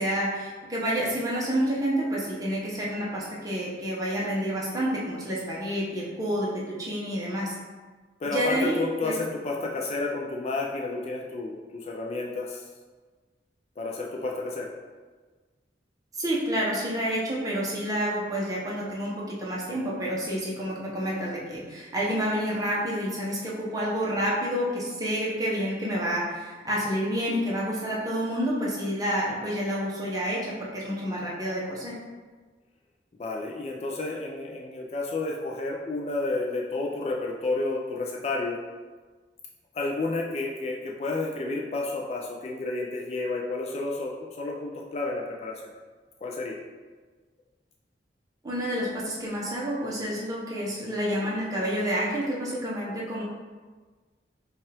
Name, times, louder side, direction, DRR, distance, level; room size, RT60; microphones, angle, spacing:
voice 1, 0.0-7.6 8.2-9.2 16.1-31.9 48.4-53.2, equal, 20° right, -6 dB, 0.8 m, -29 dB
voice 2, 8.2-12.6 13.8-14.7 33.1-38.6 39.7-45.7 46.2-46.6, left 3 dB, 35° left, -1 dB, 0.3 m, -31 dB
5.3 x 2.4 x 3.4 m, 1.4 s
head